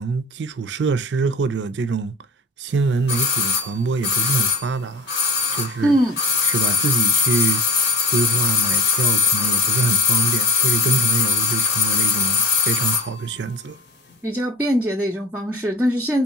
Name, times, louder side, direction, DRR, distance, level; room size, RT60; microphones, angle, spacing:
voice 1, 0.0-2.1 2.6-5.1 5.5-6.0 6.5-13.8, right 4 dB, 85° right, 0.4 m, -25 dB
sound 1, 3.1-5.8 6.1-13.1 13.4-13.5, left 5 dB, 80° left, 1.2 m, -20 dB
voice 2, 5.8-6.2 14.2-16.2, equal, 10° right, 0.5 m, -21 dB
3.5 x 3.1 x 2.9 m
head